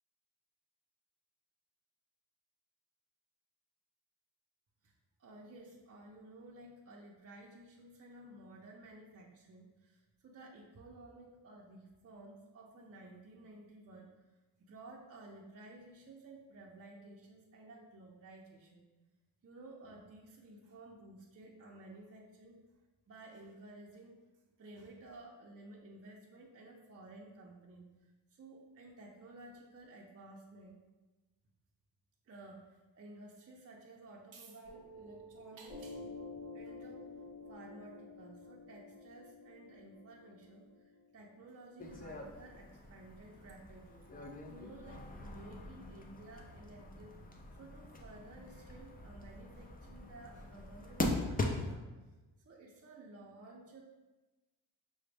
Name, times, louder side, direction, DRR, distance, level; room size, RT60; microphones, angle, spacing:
voice 1, 5.2-14.1 14.6-18.9 19.4-22.6 23.1-24.2 24.6-30.8 32.2-36.0 36.5-37.0 37.5-44.1 44.5-51.9 52.4-53.8, right 2 dB, 35° right, -1 dB, 0.5 m, -54 dB
Piano, 34.7-41.7, left 3 dB, 80° left, 1.2 m, -50 dB
sound 1, 41.8-51.8, left 2 dB, 20° left, 0.4 m, -41 dB
5.9 x 2.1 x 3.3 m, 1.1 s
wide cardioid pair, 115°, 42 cm